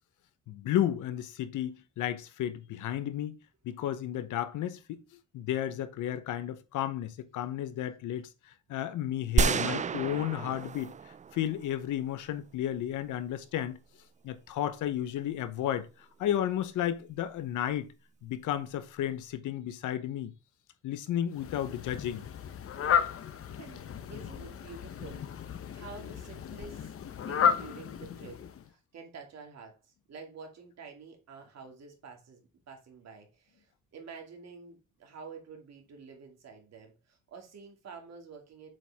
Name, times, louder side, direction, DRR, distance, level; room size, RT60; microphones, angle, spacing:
voice 1, 0.5-3.4 3.6-5.0 5.3-10.9 11.3-13.8 14.2-15.9 16.2-17.9 18.2-20.3 20.8-22.3, left 11 dB, 80° left, 0.9 m, -33 dB
sound 1, 9.4-11.7, right 5 dB, 25° right, 0.4 m, -29 dB
Fowl, 21.3-28.7, left 8 dB, 50° left, 0.8 m, -33 dB
voice 2, 23.6-25.3 25.7-26.9 27.2-38.7, right 5 dB, 60° right, 2.4 m, -49 dB
7.6 x 4.7 x 3.5 m
cardioid pair, 90°, 30 cm